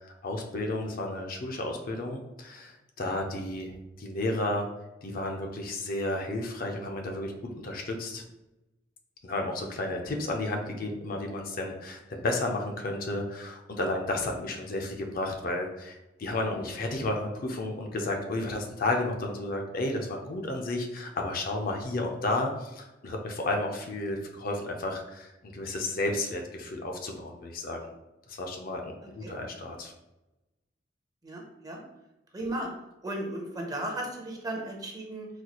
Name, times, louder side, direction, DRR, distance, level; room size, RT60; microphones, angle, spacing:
voice 1, 0.0-4.7 5.0-8.2 9.2-27.9 28.3-29.9, left 2 dB, 50° left, 2 dB, 0.5 m, -32 dB
voice 2, 31.2-31.8 32.3-32.7 33.0-35.3, right 1 dB, 20° right, 1 dB, 0.5 m, -35 dB
4.0 x 2.3 x 2.9 m, 0.97 s
head